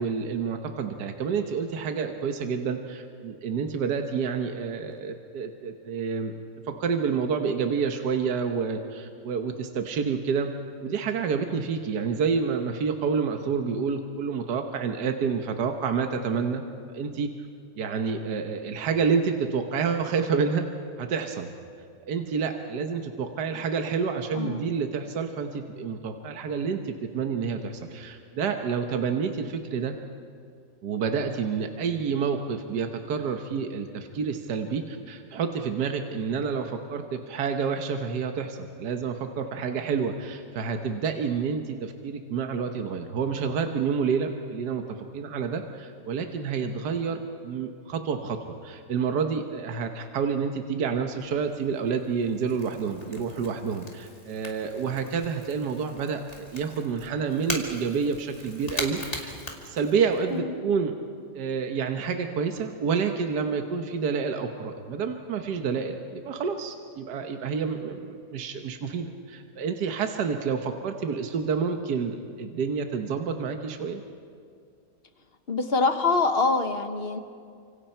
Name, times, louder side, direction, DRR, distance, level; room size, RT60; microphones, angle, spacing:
voice 1, 0.0-6.3 6.7-10.5 10.8-16.6 16.9-17.3 17.8-20.7 21.0-21.5 22.1-29.9 30.8-48.4 48.6-59.3 59.6-61.0 61.3-74.0, right 6 dB, 70° right, 5 dB, 1.7 m, -29 dB
voice 2, 24.3-24.7 60.3-60.5 75.5-77.2, left 3 dB, 40° left, 7 dB, 1.2 m, -25 dB
Crackle / Crack, 50.8-60.4, left 1 dB, 20° left, 2.3 m, -40 dB
30.0 x 26.0 x 4.5 m, 2.3 s
omnidirectional pair, 1.8 m